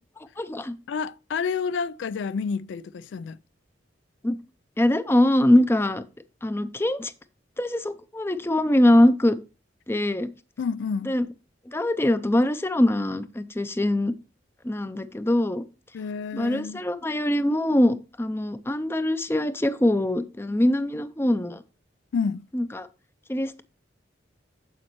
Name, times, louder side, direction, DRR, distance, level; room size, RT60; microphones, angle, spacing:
voice 1, 0.4-0.8 4.2-4.4 4.8-6.0 6.4-7.1 7.6-9.4 9.9-10.3 11.1-11.3 11.7-14.1 14.6-15.6 16.3-21.6 22.5-22.9 23.3-23.6, left 1 dB, 15° left, 0.5 m, -23 dB
voice 2, 0.9-3.4 10.6-11.1 15.9-16.8 22.1-22.5, left 5 dB, 80° left, 0.3 m, -29 dB
9.4 x 7.5 x 3.0 m
head